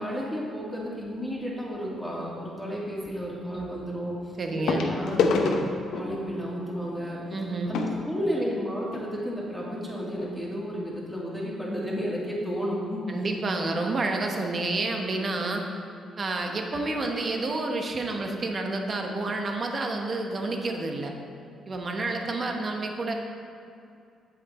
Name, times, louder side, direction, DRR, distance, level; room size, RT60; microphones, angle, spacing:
voice 1, 0.0-5.6 5.9-7.2 7.7-13.1 22.0-22.1, equal, ahead, -5 dB, 2.3 m, -32 dB
sound 1, 1.1-1.4 3.1-3.2 4.7-9.1 9.9-10.0 10.2-10.3 10.9-11.0, left 4 dB, 80° left, 0.8 m, -29 dB
voice 2, 4.4-4.9 7.3-7.7 13.1-15.6 16.2-21.1 21.7-23.1, right 2 dB, 40° right, 3 dB, 1.1 m, -29 dB
8.3 x 7.9 x 4.3 m, 2.5 s
cardioid pair, 90°, 0 cm